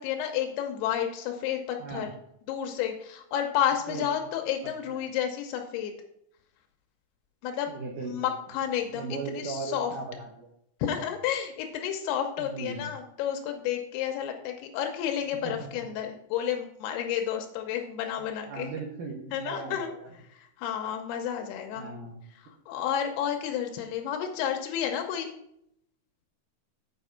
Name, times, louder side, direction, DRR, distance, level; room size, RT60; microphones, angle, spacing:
voice 1, 0.0-2.1 2.5-5.9 7.4-7.7 8.1-9.9 10.8-18.7 19.3-19.9 20.3-21.9 22.7-25.3, left 9 dB, 85° left, 4 dB, 2.7 m, -31 dB
voice 2, 1.8-2.1 3.9-4.1 7.7-8.3 8.9-10.5 12.4-12.9 15.4-15.9 18.2-20.1 21.7-22.2, right 4 dB, 65° right, 1 dB, 2.2 m, -38 dB
8.3 x 4.9 x 5.7 m, 0.75 s
omnidirectional pair, 4.7 m